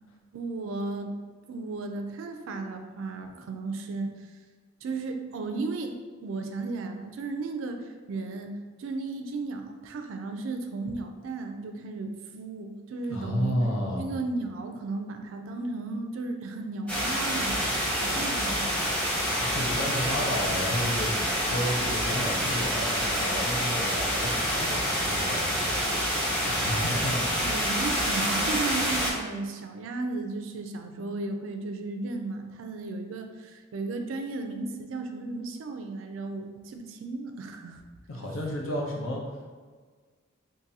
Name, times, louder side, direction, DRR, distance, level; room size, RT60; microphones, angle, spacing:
voice 1, 0.3-1.1 1.5-4.1 4.8-8.5 8.8-13.6 14.0-18.8 27.4-37.8, right 3 dB, 80° right, 5 dB, 0.4 m, -35 dB
voice 2, 13.1-14.1 17.9-18.2 19.1-27.3 38.1-39.2, equal, 90° left, -1 dB, 0.7 m, -32 dB
sound 1, 16.9-29.1, equal, 5° left, 0.8 m, -27 dB
3.8 x 2.6 x 2.7 m, 1.5 s
head